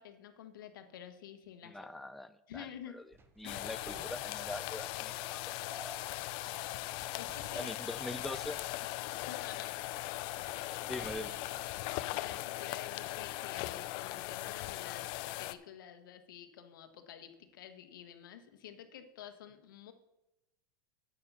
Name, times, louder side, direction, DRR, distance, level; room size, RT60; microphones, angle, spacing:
voice 1, 0.0-1.8 2.5-3.0 3.4-3.7 7.2-7.7 8.2-8.5 9.3-9.7 11.7-15.1 15.4-19.9, left 9 dB, 85° left, 8 dB, 1.3 m, -50 dB
voice 2, 1.6-2.7 2.9-3.0 3.4-5.4 5.7-6.0 7.5-8.6 10.8-11.4, left 1 dB, ahead, 10 dB, 0.4 m, -43 dB
sound 1, 3.1-12.5 12.8-13.0, right 4 dB, 20° right, 1.0 m, -58 dB
sound 2, 3.5-15.6, left 17 dB, 55° left, 0.6 m, -39 dB
8.6 x 7.2 x 6.8 m, 0.90 s
supercardioid pair, 120°, 11 cm